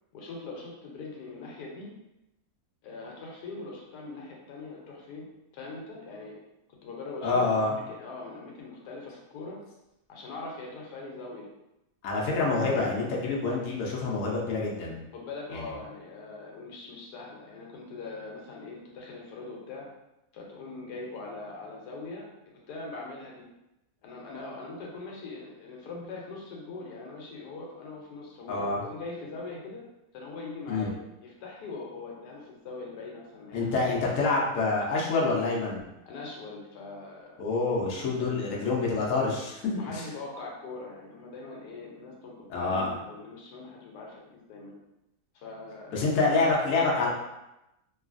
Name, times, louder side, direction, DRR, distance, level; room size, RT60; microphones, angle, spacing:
voice 1, 0.1-1.9 2.8-5.2 5.5-6.4 6.8-7.4 7.7-9.6 10.1-11.5 15.1-19.9 20.3-22.3 22.7-23.5 24.0-29.8 30.1-31.0 31.2-33.9 36.1-37.3 38.2-38.8 39.7-44.8 45.3-46.0, left 3 dB, 85° left, -2 dB, 1.2 m, -41 dB
voice 2, 7.2-7.7 12.0-15.0 15.5-15.7 28.5-28.8 30.7-30.9 33.5-35.8 37.4-40.0 42.5-42.9 45.9-47.1, left 3 dB, 65° left, -3 dB, 0.9 m, -27 dB
3.1 x 2.3 x 2.5 m, 0.91 s
omnidirectional pair, 1.7 m